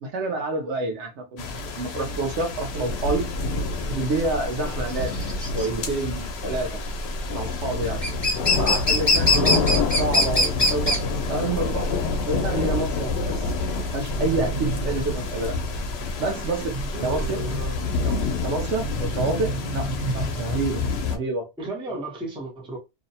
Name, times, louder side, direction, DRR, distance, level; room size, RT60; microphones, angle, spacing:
voice 1, 0.0-3.3 3.9-6.8 7.3-8.0 8.6-9.7 10.0-11.0 11.3-13.5 13.9-15.6 16.2-17.4 18.0-20.8 21.1-21.5, right 3 dB, 90° right, 0.9 m, -28 dB
sound 1, 1.4-21.2, left 4 dB, 70° left, 0.8 m, -28 dB
sound 2, 2.9-19.2, left 1 dB, 25° left, 1.1 m, -25 dB
voice 2, 9.3-9.6 16.9-17.8 21.6-22.8, right 2 dB, 5° right, 0.6 m, -35 dB
sound 3, 14.0-15.6 16.6-18.1 18.5-20.8, right 2 dB, 40° right, 1.0 m, -34 dB
2.6 x 2.0 x 2.6 m
omnidirectional pair, 1.2 m